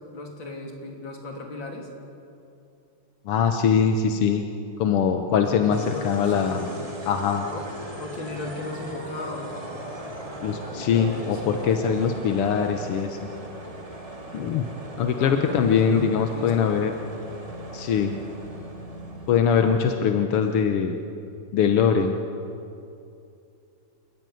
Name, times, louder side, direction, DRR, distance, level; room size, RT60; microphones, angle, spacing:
voice 1, 0.1-1.9 5.3-6.7 7.5-7.7 8.0-9.6 10.7-11.6 15.2-16.7, left 3 dB, 60° left, 1 dB, 3.9 m, -36 dB
voice 2, 3.3-4.4 4.8-6.7 7.1-7.5 10.4-13.3 14.3-14.7 15.0-16.9 17.7-18.1 19.3-21.0 21.5-22.2, left 7 dB, 90° left, 6 dB, 2.0 m, -22 dB
sound 1, 5.7-19.9, right 1 dB, 15° right, 2.6 m, -38 dB
29.0 x 15.5 x 9.4 m, 2.6 s
omnidirectional pair, 2.4 m